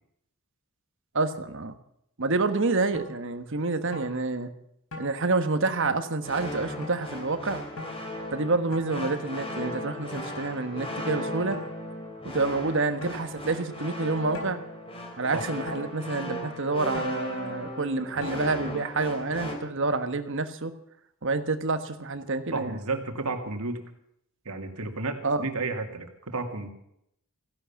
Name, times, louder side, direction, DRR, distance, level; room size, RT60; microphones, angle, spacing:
voice 1, 1.1-1.7 2.2-4.5 5.0-7.6 8.3-11.6 12.3-14.6 15.1-20.7 21.2-22.8 25.2-25.5, right 3 dB, 60° right, 10 dB, 1.3 m, -28 dB
sound 1, 2.9-3.1 3.9-4.1 4.9-5.1 5.8-6.0 6.8-7.0 7.8-8.0 8.7-8.9 10.2-10.4 11.5-11.7 13.0-13.2 14.3-14.6 15.7-15.9 16.9-17.2 18.2-18.3, left 2 dB, 75° left, 4.3 m, -38 dB
sound 2, 6.2-19.6, left 1 dB, 25° left, 2.9 m, -37 dB
voice 2, 22.5-23.8 24.5-26.7, right 3 dB, 80° right, 5 dB, 2.2 m, -32 dB
15.5 x 11.0 x 7.2 m, 0.74 s
head